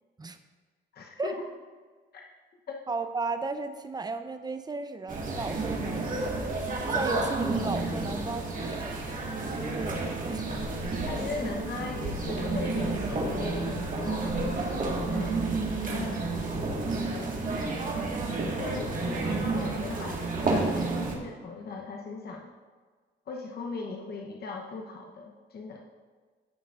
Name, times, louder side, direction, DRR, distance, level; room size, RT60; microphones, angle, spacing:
voice 1, 0.9-1.4 2.1-2.2 2.7-2.8 11.1-15.5 15.9-16.3 18.5-22.5 23.3-25.8, left 4 dB, 50° left, 1 dB, 1.0 m, -38 dB
voice 2, 2.9-6.4 6.9-9.1 9.5-10.5, right 3 dB, 20° right, 9 dB, 0.6 m, -35 dB
sound 1, 5.1-21.1, right 3 dB, 40° right, 1.8 m, -30 dB
14.0 x 5.9 x 2.5 m, 1.5 s
cardioid pair, 90°, 20 cm